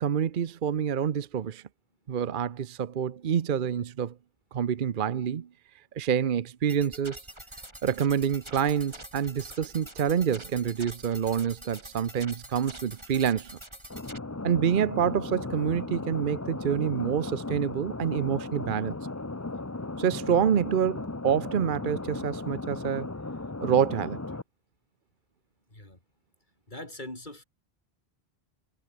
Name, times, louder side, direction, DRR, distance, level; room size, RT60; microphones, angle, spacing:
voice 1, 0.0-1.6 2.1-4.1 4.5-5.5 6.0-7.2 7.8-13.5 14.4-19.0 20.0-23.1 23.6-24.2, right 8 dB, 55° right, 0.9 m, -27 dB
sound 1, 6.7-14.2, right 1 dB, 25° right, 5.3 m, -45 dB
sound 2, 13.9-24.4, left 2 dB, 15° left, 0.8 m, -36 dB
voice 2, 26.7-27.4, left 1 dB, 50° left, 5.4 m, -41 dB
omnidirectional pair, 1.1 m